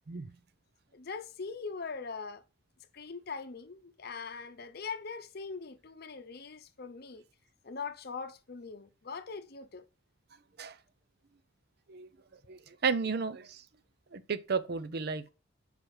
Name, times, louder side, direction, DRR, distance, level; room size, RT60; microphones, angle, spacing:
voice 1, 0.9-2.4 2.9-7.2 7.6-9.9, left 5 dB, 55° left, 0.7 m, -41 dB
voice 2, 12.5-13.6 14.1-15.3, right 5 dB, 55° right, 0.6 m, -33 dB
6.1 x 5.0 x 4.8 m
head